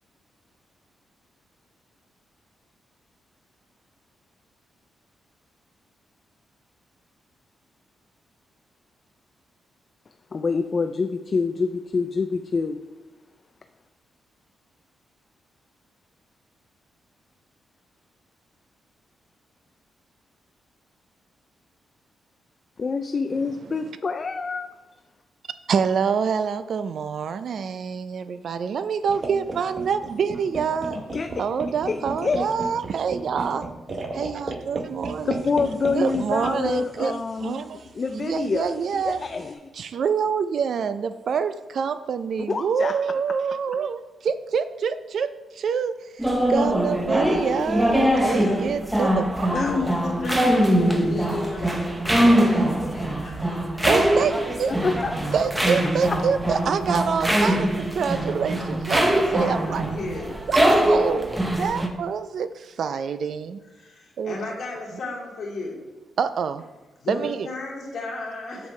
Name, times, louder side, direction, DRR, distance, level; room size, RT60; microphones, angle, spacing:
voice 1, 10.3-12.8 22.8-24.7 31.1-31.3 31.9-32.5 35.3-37.6 37.9-39.6 42.5-42.9 49.5-50.6 54.8-55.1, left 4 dB, 35° left, 7 dB, 0.3 m, -26 dB
voice 2, 25.7-31.0 31.4-33.6 34.1-35.4 35.9-37.9 38.1-39.2 39.7-44.0 44.3-49.9 53.9-54.7 55.3-59.8 60.5-63.6 64.2-64.4 66.2-66.7 67.1-67.5, right 6 dB, 60° right, 12 dB, 0.4 m, -26 dB
sound 1, 29.1-39.5, right 3 dB, 35° right, 0.8 m, -36 dB
sound 2, 46.2-61.9, right 1 dB, 10° right, 0.7 m, -22 dB
voice 3, 48.1-48.6 49.5-53.9 54.1-54.6 59.3-60.4 61.6-61.7 63.8-65.8 67.0-68.7, left 2 dB, 55° left, -4 dB, 2.5 m, -35 dB
8.0 x 7.0 x 3.2 m, 1.2 s
wide cardioid pair, 140°, 0 cm